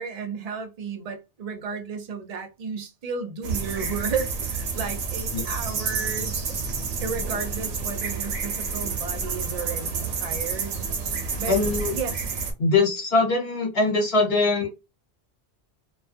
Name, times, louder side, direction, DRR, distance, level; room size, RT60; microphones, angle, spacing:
voice 1, 0.0-6.4 7.0-10.8 11.4-11.6 11.9-12.2, right 5 dB, 45° right, 0.5 m, -33 dB
sound 1, 3.4-12.5, right 5 dB, 85° right, 1.0 m, -29 dB
voice 2, 11.5-12.0 12.6-14.7, left 3 dB, 60° left, 1.2 m, -22 dB
2.4 x 2.2 x 2.5 m
omnidirectional pair, 1.2 m